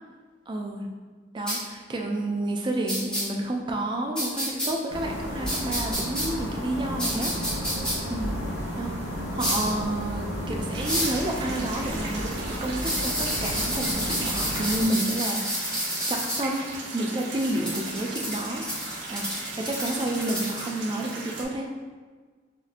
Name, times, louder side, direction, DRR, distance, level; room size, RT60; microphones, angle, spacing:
voice 1, 0.5-0.9 1.3-7.3 8.1-8.3 8.8-8.9 9.3-15.7 16.1-18.7 19.1-21.7, right 1 dB, 25° right, 1 dB, 0.3 m, -30 dB
sound 1, 1.5-1.6 2.9-3.2 4.2-4.7 5.5-6.3 7.0-7.9 9.4-9.7 10.8-11.2 12.8-16.4 17.4-20.7, equal, 5° left, 0.7 m, -29 dB
sound 2, 4.9-14.8, equal, 80° left, 1.1 m, -33 dB
sound 3, 10.7-21.5, right 2 dB, 60° right, 0.6 m, -37 dB
4.0 x 2.6 x 2.5 m, 1.5 s
head